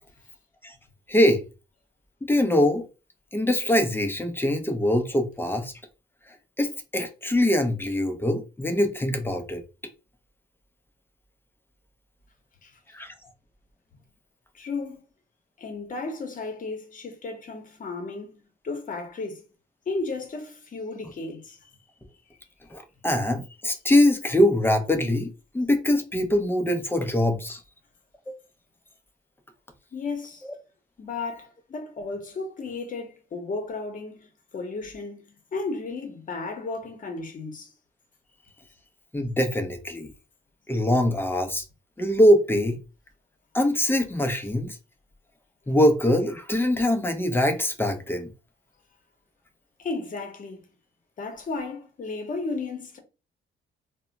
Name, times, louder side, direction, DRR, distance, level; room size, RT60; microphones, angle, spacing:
voice 1, 1.1-1.4 2.3-2.9 3.3-5.7 6.6-9.6 12.9-13.1 22.7-27.6 30.4-30.5 39.1-40.1 40.7-41.6 42.0-42.8 43.5-44.8 45.7-48.3, left 1 dB, 10° left, 0.5 m, -23 dB
voice 2, 14.5-15.0 15.6-18.3 18.6-19.5 19.9-21.7 29.9-30.4 31.0-34.3 34.5-35.2 35.5-37.7 49.8-50.6 51.2-53.0, left 3 dB, 40° left, 0.8 m, -34 dB
2.1 x 2.0 x 3.8 m
cardioid pair, 90°, 20 cm